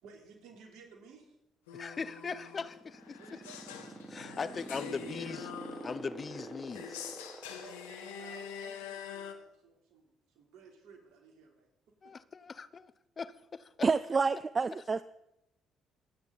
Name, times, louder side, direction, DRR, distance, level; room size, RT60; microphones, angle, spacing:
voice 1, 0.0-1.4 3.2-3.6 4.5-4.9 7.6-11.7 12.0-12.1, right 5 dB, 70° right, 2 dB, 3.4 m, -56 dB
sound 1, 1.7-9.3, left 7 dB, 85° left, 1.2 m, -45 dB
voice 2, 1.7-3.4 4.1-5.5 5.8-7.0 12.0-13.9, left 5 dB, 40° left, 16 dB, 0.8 m, -40 dB
sound 2, 2.5-9.0, right 1 dB, 15° right, 3.9 m, -45 dB
voice 3, 13.8-15.0, right 4 dB, 35° right, 15 dB, 0.5 m, -28 dB
26.0 x 9.7 x 4.1 m, 0.85 s
hypercardioid pair, 50°, 0 cm